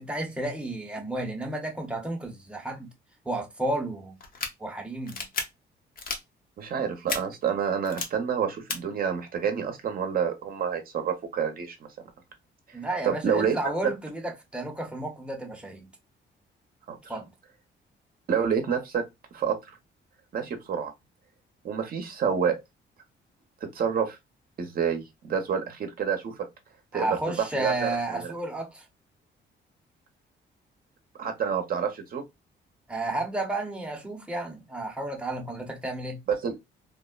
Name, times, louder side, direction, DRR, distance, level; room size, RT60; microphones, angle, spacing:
voice 1, 0.0-2.9 3.2-4.2 4.6-5.2 12.7-15.9 17.1-17.3 26.9-28.8 32.9-36.2, right 2 dB, 5° right, 0.7 m, -32 dB
sound 1, 4.2-4.5 5.1-5.4 6.0-6.2 7.1-7.2 7.8-8.0 8.7-8.8, left 4 dB, 50° left, 0.7 m, -31 dB
voice 2, 6.6-11.8 12.7-12.8 13.0-13.6 16.9-17.2 18.3-19.0 19.3-19.6 20.3-20.9 21.6-22.6 23.6-24.2 24.6-26.4 26.9-28.3 31.2-32.2 36.4-36.5, right 7 dB, 50° right, 0.7 m, -28 dB
3.4 x 2.0 x 2.2 m
cardioid pair, 130°, 20 cm